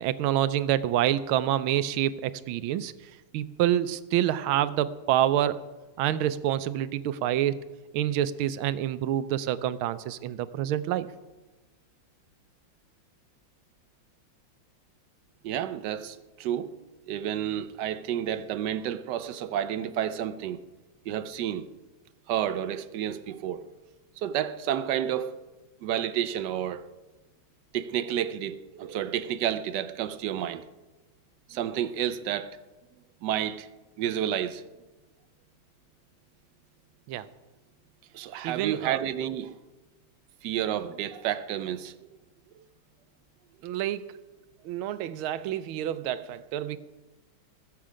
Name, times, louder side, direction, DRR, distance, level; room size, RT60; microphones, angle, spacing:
voice 1, 0.0-2.9 3.3-5.6 6.0-7.6 7.9-11.1 37.1-37.3 38.4-39.0 43.6-44.1 44.6-46.8, right 12 dB, 85° right, 1.5 m, -27 dB
voice 2, 15.4-20.6 21.1-21.7 22.3-23.7 24.2-25.4 25.8-26.9 27.7-30.6 31.5-32.6 33.2-33.7 34.0-34.6 38.1-39.6 40.4-41.9, right 10 dB, 70° right, 1.1 m, -30 dB
20.0 x 7.5 x 5.0 m
omnidirectional pair, 2.2 m